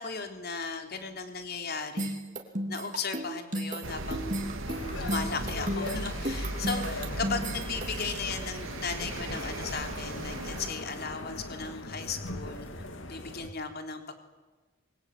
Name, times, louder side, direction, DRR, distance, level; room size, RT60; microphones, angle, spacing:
voice 1, 0.0-2.1 2.7-12.7 13.1-14.1, left 4 dB, 45° left, 5 dB, 3.5 m, -36 dB
sound 1, 2.0-8.2, right 1 dB, 35° right, 3.2 m, -34 dB
sound 2, 3.8-10.7, right 2 dB, 65° right, 2.5 m, -38 dB
sound 3, 4.7-13.5, left 2 dB, 60° left, 3.0 m, -40 dB
25.0 x 24.0 x 9.5 m, 1.3 s
head